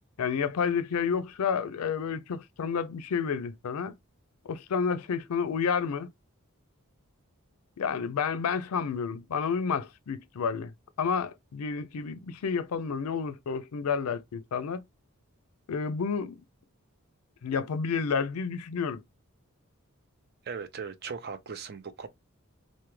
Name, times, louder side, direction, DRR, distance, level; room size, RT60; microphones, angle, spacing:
voice 1, 0.2-4.0 4.5-6.1 7.8-10.7 11.0-14.8 15.7-16.4 17.4-19.0, left 6 dB, 90° left, 0.4 m, -30 dB
voice 2, 20.4-22.1, right 5 dB, 45° right, 0.5 m, -38 dB
3.4 x 2.1 x 2.9 m
head